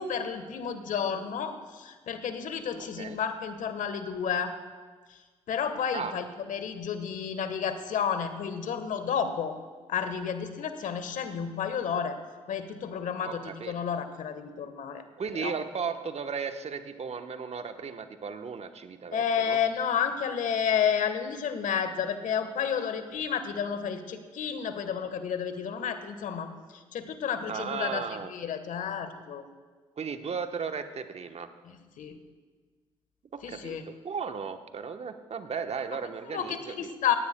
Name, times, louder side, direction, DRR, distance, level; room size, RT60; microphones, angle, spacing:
voice 1, 0.0-4.5 5.5-9.6 9.9-12.2 12.5-15.0 15.4-15.5 19.1-29.4 31.6-32.2 33.4-33.8 36.3-37.2, left 7 dB, 60° left, 9 dB, 1.3 m, -31 dB
voice 2, 2.8-3.2 5.9-6.1 13.2-13.7 15.2-19.6 27.5-28.3 30.0-31.5 33.3-36.9, right 6 dB, 45° right, 8 dB, 1.0 m, -35 dB
18.0 x 16.5 x 2.2 m, 1.4 s
hypercardioid pair, 45°, 15 cm